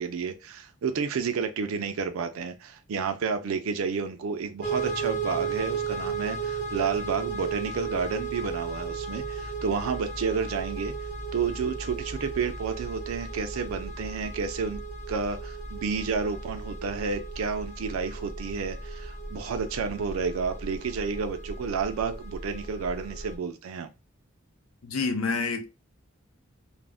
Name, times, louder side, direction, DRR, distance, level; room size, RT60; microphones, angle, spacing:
voice 1, 0.0-10.9 11.3-14.8 15.1-23.9, right 5 dB, 85° right, 0.4 m, -31 dB
sound 1, 4.6-23.3, right 4 dB, 40° left, 0.8 m, -35 dB
voice 2, 24.8-25.7, left 4 dB, 90° left, 0.6 m, -28 dB
2.5 x 2.0 x 3.3 m
head